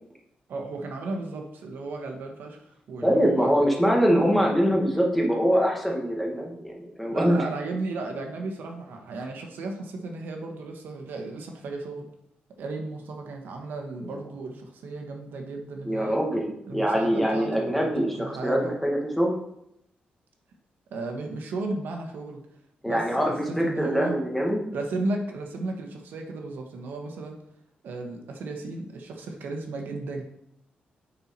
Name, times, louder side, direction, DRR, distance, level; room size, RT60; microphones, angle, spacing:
voice 1, 0.5-3.5 7.1-12.1 12.6-16.2 16.7-18.7 20.9-22.4 22.8-24.2 24.7-27.4 27.8-30.2, right 3 dB, 75° right, 3 dB, 1.3 m, -34 dB
voice 2, 3.0-7.4 14.0-14.1 15.8-19.3 22.8-24.6, equal, 5° left, -1 dB, 1.5 m, -24 dB
10.0 x 4.5 x 4.2 m, 0.76 s
wide cardioid pair, 140°, 3 cm